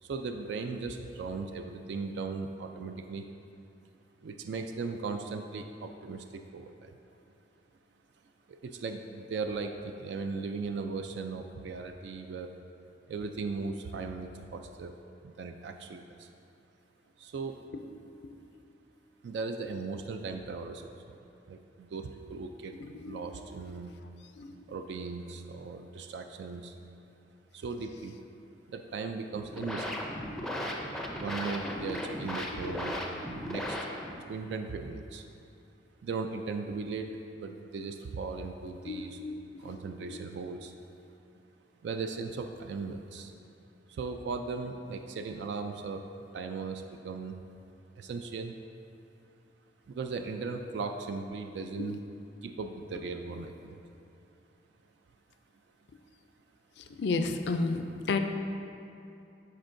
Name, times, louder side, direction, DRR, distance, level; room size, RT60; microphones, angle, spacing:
voice 1, 0.0-3.3 4.2-6.9 8.5-12.5 13.1-14.9 15.2-16.3 17.2-17.6 19.2-21.2 21.5-22.7 23.0-23.9 24.7-26.8 27.5-28.2 28.7-30.1 30.7-33.8 34.3-35.2 36.0-39.2 39.6-40.7 41.8-43.3 43.9-46.0 46.3-47.4 48.0-48.5 49.9-52.0 52.4-53.8, right 4 dB, 70° right, 6 dB, 0.3 m, -38 dB
voice 2, 22.8-23.2 24.4-24.6 31.7-32.0 38.8-39.8 40.1-40.2 51.8-52.0 56.8-58.2, left 3 dB, 65° left, 7 dB, 0.4 m, -33 dB
sound 1, 29.3-34.3, left 1 dB, 5° left, 0.4 m, -36 dB
11.5 x 4.4 x 2.6 m, 2.7 s
head